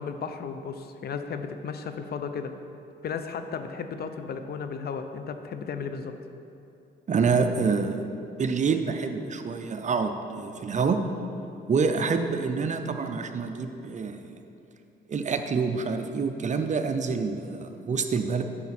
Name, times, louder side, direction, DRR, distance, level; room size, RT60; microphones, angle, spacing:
voice 1, 0.0-2.5 3.0-6.2, left 6 dB, 55° left, 8 dB, 0.6 m, -34 dB
voice 2, 7.1-8.1 8.4-11.0 11.7-14.2 15.1-18.4, right 5 dB, 35° right, 7 dB, 0.6 m, -27 dB
8.9 x 5.9 x 4.2 m, 2.7 s
cardioid pair, 90°, 20 cm